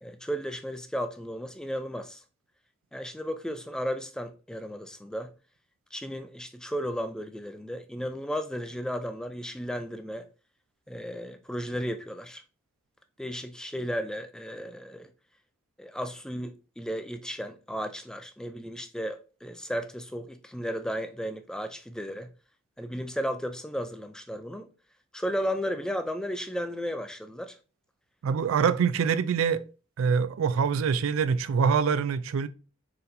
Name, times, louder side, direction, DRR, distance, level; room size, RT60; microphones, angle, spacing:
voice 1, 0.0-2.2 2.9-5.3 5.9-10.3 10.9-12.4 13.2-15.1 15.8-22.3 22.8-24.7 25.1-27.6, equal, 5° left, 0.3 m, -34 dB
voice 2, 28.2-29.6 30.0-32.5, right 6 dB, 80° right, 0.3 m, -25 dB
4.2 x 3.9 x 2.6 m
head